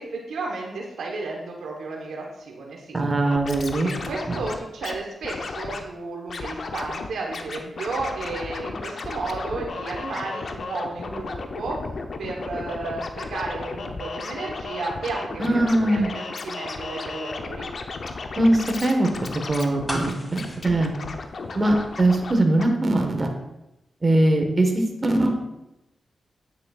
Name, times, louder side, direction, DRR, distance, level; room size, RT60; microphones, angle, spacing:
voice 1, 0.0-3.0 3.8-11.8 12.2-17.7, right 3 dB, 85° right, 0 dB, 1.1 m, -33 dB
voice 2, 2.9-3.9 4.3-4.4 15.4-16.1 18.4-19.1 19.5-20.9 21.5-23.3 24.0-25.3, right 1 dB, 35° right, 3 dB, 1.4 m, -21 dB
Scratching (performance technique), 3.2-5.0 5.2-5.8 6.3-7.1 7.3-22.3 22.6-22.7, left 3 dB, 60° left, 0.7 m, -34 dB
sound 1, 19.9-21.9 22.2-22.3, equal, 10° left, 2.0 m, -35 dB
9.7 x 6.5 x 2.4 m, 0.91 s
cardioid pair, 60°, 0 cm